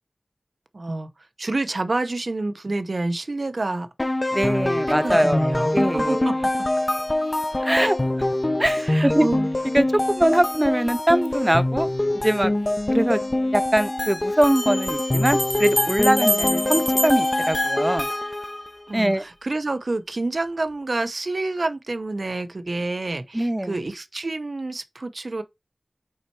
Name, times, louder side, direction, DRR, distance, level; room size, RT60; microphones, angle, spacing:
voice 1, 0.7-1.1 1.4-3.9 5.0-6.3 7.7-7.9 8.8-9.5 18.9-25.4, right 2 dB, 80° right, 0.7 m, -28 dB
sound 1, 4.0-18.7, left 1 dB, 40° left, 0.6 m, -24 dB
voice 2, 4.3-5.5 5.7-6.3 7.5-8.0 8.6-9.3 9.7-11.9 12.2-12.5 12.9-13.2 13.5-18.1 18.9-19.2 23.3-23.8, right 1 dB, 20° right, 0.4 m, -22 dB
sound 2, 12.8-12.9 14.4-18.4, equal, 15° left, 1.1 m, -28 dB
5.6 x 4.4 x 4.5 m
wide cardioid pair, 55°, 0 cm